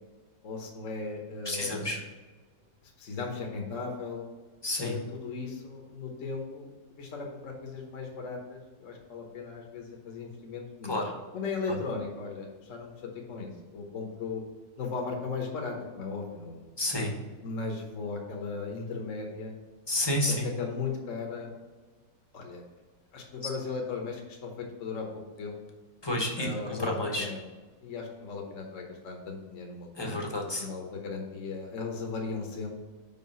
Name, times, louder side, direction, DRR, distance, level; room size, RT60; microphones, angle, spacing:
voice 1, 0.4-2.0 2.8-4.2 4.8-6.6 6.9-11.0 11.3-14.4 14.8-16.7 17.4-19.6 20.2-21.5 22.3-22.6 23.1-25.1 25.4-25.6 26.4-27.4 27.8-32.7, left 4 dB, 60° left, 1 dB, 1.3 m, -37 dB
voice 2, 1.5-2.0 4.6-4.9 10.9-11.0 16.8-17.1 19.9-20.5 26.0-27.3 30.0-30.7, left 1 dB, 20° left, 1 dB, 1.0 m, -30 dB
5.6 x 5.0 x 5.4 m, 1.3 s
omnidirectional pair, 1.6 m